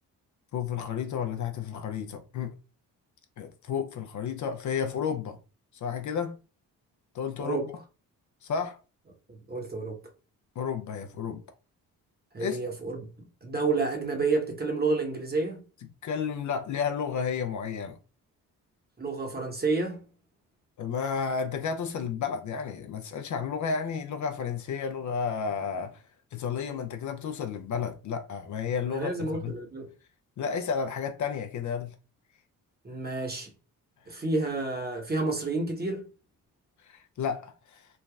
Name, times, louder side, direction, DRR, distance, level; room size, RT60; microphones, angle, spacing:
voice 1, 0.5-2.5 3.4-5.4 5.7-6.4 7.1-7.6 8.4-8.8 10.6-11.4 12.4-12.7 16.0-18.0 20.8-26.0 26.3-29.6 30.4-31.9 34.1-34.2 36.8-37.9, left 6 dB, 50° left, 0.5 m, -32 dB
voice 2, 9.3-10.0 12.3-13.0 13.4-15.6 19.0-20.0 28.9-29.9 32.8-33.5 34.1-36.0, right 3 dB, 25° right, 1.0 m, -30 dB
3.2 x 2.2 x 2.3 m
supercardioid pair, 60°, 38 cm